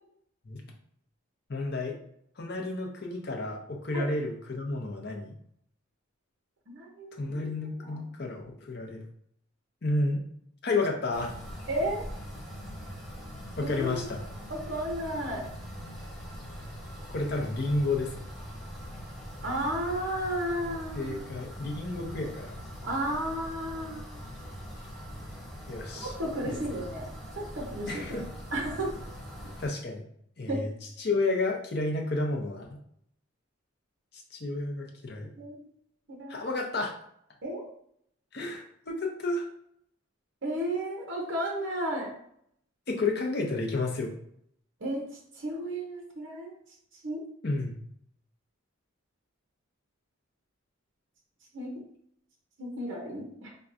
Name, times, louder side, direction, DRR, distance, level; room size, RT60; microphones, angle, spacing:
voice 1, 1.5-2.0 2.4-5.3 7.2-9.0 9.8-10.2 10.6-11.3 13.6-14.2 17.1-18.3 20.9-22.6 25.7-26.1 26.4-26.8 27.9-28.2 29.4-30.0 30.4-30.7 31.0-32.7 34.3-35.3 36.3-36.9 38.3-39.4 42.9-44.1 47.4-47.8, left 2 dB, 50° left, 1 dB, 0.6 m, -31 dB
voice 2, 6.7-7.5 7.8-8.0 11.7-12.0 13.6-14.0 14.5-15.5 19.4-21.2 22.8-24.2 26.0-28.0 28.5-29.0 30.5-30.6 35.3-35.6 36.1-36.4 37.4-37.7 40.4-42.1 44.8-45.1 45.3-46.5 46.9-47.2 51.5-51.7 52.6-53.5, right 1 dB, 60° right, -1 dB, 0.7 m, -33 dB
sound 1, 11.1-29.7, equal, ahead, 0.7 m, -42 dB
4.5 x 2.2 x 2.5 m, 0.68 s
head